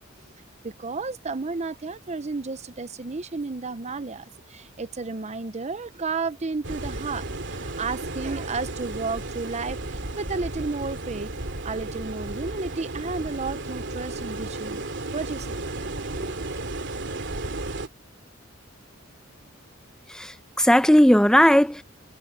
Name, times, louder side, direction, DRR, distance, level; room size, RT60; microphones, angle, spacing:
voice 1, 0.6-11.3 11.6-14.8 15.1-15.6 16.1-16.3, right 4 dB, 35° right, 0.7 m, -32 dB
sound 1, 6.6-17.9, right 2 dB, 60° right, 2.6 m, -33 dB
voice 2, 20.1-21.8, equal, 5° left, 0.8 m, -17 dB
head